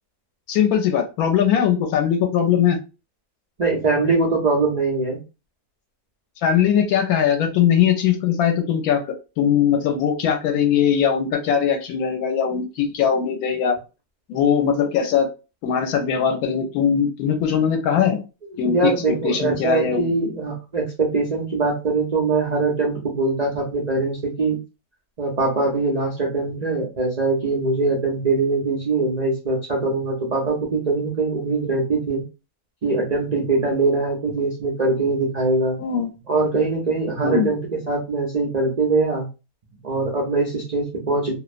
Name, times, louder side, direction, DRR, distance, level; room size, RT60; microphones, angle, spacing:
voice 1, 0.5-2.8 6.4-9.0 9.4-13.8 14.3-15.3 15.6-18.2 18.6-18.9 19.2-20.1 35.8-36.1 37.2-37.5, left 8 dB, 70° left, 4 dB, 1.0 m, -20 dB
voice 2, 3.6-5.2 18.6-24.6 25.2-32.2 32.8-35.8 36.3-39.3 39.8-41.4, right 3 dB, 80° right, -2 dB, 0.3 m, -22 dB
2.7 x 2.0 x 2.4 m, 0.30 s
omnidirectional pair, 1.7 m